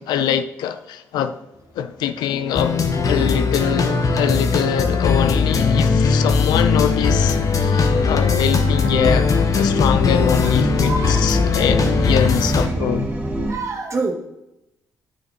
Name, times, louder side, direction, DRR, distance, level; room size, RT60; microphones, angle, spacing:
voice 1, 0.0-1.4 1.8-2.8 3.0-13.1, left 9 dB, 70° left, 0.5 m, -23 dB
sound 1, 2.0-13.5, right 1 dB, 20° right, 2.0 m, -29 dB
sound 2, 2.6-12.7, left 4 dB, 50° left, 1.1 m, -19 dB
voice 2, 10.8-11.3 13.5-14.1, right 3 dB, 40° right, 1.8 m, -27 dB
9.1 x 8.3 x 2.9 m
hypercardioid pair, 45°, 7 cm